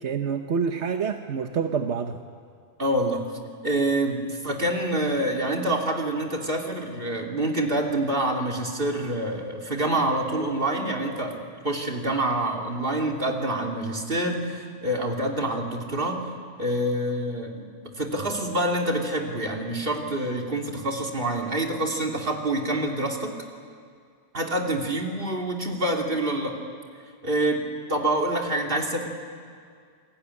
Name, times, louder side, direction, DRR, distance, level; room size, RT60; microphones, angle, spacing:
voice 1, 0.0-2.2, right 6 dB, 85° right, 6 dB, 1.3 m, -27 dB
voice 2, 2.8-3.2 3.6-16.2 16.6-17.7 18.0-23.4 24.3-26.6 27.2-27.6 27.9-29.1, right 1 dB, 55° right, 1 dB, 3.2 m, -26 dB
28.0 x 21.0 x 9.8 m, 2.2 s
omnidirectional pair, 1.1 m